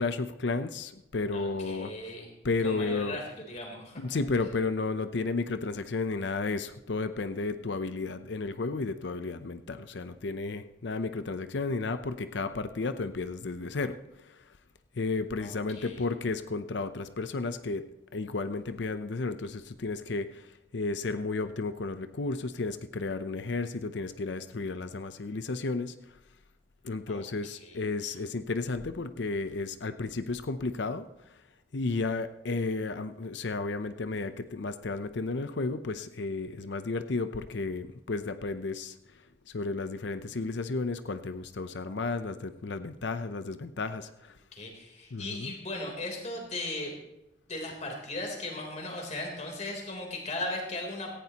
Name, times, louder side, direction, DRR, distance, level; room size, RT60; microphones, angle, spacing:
voice 1, 0.0-1.9 2.4-3.2 4.0-14.5 14.9-26.2 26.8-31.4 31.7-44.4 45.1-45.5, left 3 dB, 70° left, 11 dB, 0.6 m, -33 dB
voice 2, 1.3-2.3 2.6-3.2 3.5-4.0 15.4-15.5 15.8-16.0 27.1-27.2 27.6-27.8 44.5-47.0 47.5-51.1, left 2 dB, 40° left, 1 dB, 3.5 m, -37 dB
17.5 x 15.0 x 2.9 m, 0.90 s
head